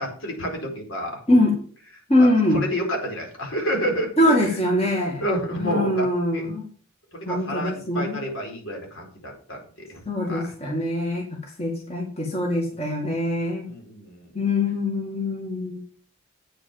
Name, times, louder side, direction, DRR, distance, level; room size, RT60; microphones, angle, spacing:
voice 1, 0.0-1.2 2.2-4.3 5.2-6.1 6.3-6.5 7.1-10.0 10.3-10.5 13.6-14.3, equal, 70° left, 1 dB, 4.5 m, -29 dB
voice 2, 2.1-2.6 4.2-5.2 5.6-6.7 7.2-8.2 10.1-13.7 14.3-15.8, left 1 dB, 30° left, 0 dB, 2.2 m, -23 dB
9.0 x 7.0 x 7.2 m, 0.43 s
head